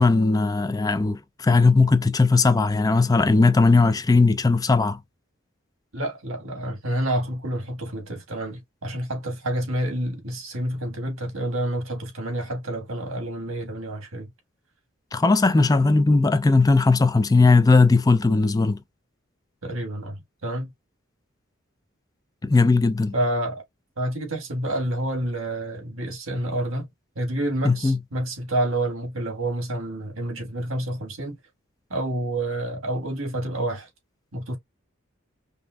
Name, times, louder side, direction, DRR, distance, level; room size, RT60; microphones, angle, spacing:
voice 1, 0.0-5.0 15.1-18.8 22.4-23.1 27.6-28.0, left 3 dB, 20° left, 0.4 m, -18 dB
voice 2, 5.9-14.3 19.6-20.7 23.1-23.6 24.0-26.9 27.1-31.4 31.9-33.9 34.3-34.6, right 1 dB, 75° right, 1.5 m, -28 dB
5.2 x 2.5 x 2.3 m
head